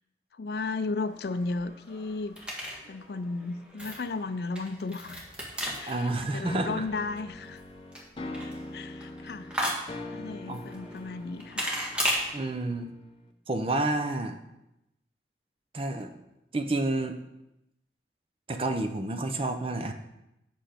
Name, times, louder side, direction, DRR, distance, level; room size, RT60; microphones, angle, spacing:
voice 1, 0.4-2.4 2.9-5.2 5.8-7.6 8.7-9.6 10.1-11.7, left 3 dB, 60° left, 12 dB, 0.4 m, -34 dB
sound 1, 1.0-12.2, equal, 5° right, 1.4 m, -36 dB
voice 2, 5.9-6.8 10.5-10.6 12.3-12.9 13.5-14.4 15.7-16.1 16.5-17.2 18.5-19.9, right 2 dB, 30° right, 6 dB, 0.6 m, -29 dB
sound 2, 6.4-13.3, left 2 dB, 30° left, 0.7 m, -43 dB
7.9 x 5.9 x 5.0 m, 0.89 s
head